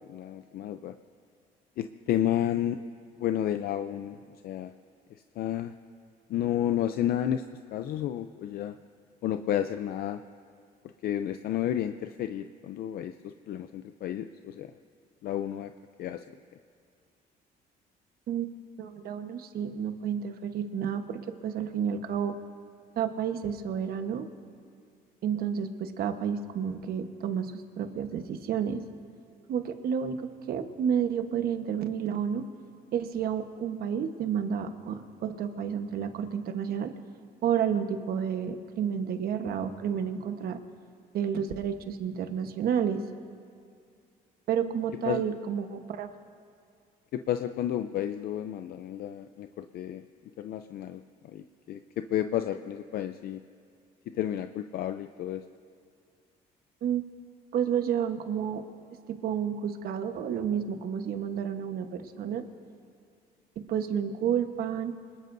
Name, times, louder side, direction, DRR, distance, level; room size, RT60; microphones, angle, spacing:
voice 1, 0.1-0.9 1.8-2.8 3.2-4.2 4.4-4.7 5.4-5.7 6.3-7.4 7.7-8.7 9.2-10.2 11.0-14.7 15.2-15.7 16.0-16.2 45.1-45.2 47.1-50.0 50.4-53.4 54.1-55.4, left 11 dB, 65° left, 9 dB, 0.5 m, -31 dB
voice 2, 18.8-22.4 23.0-24.3 25.2-28.8 29.5-32.4 32.9-36.9 37.4-40.6 41.1-43.0 44.5-46.1 56.8-57.0 57.5-58.6 59.1-62.4 63.6-64.9, right 8 dB, 65° right, 7 dB, 1.2 m, -30 dB
25.5 x 20.0 x 2.7 m, 2.3 s
cardioid pair, 110°, 17 cm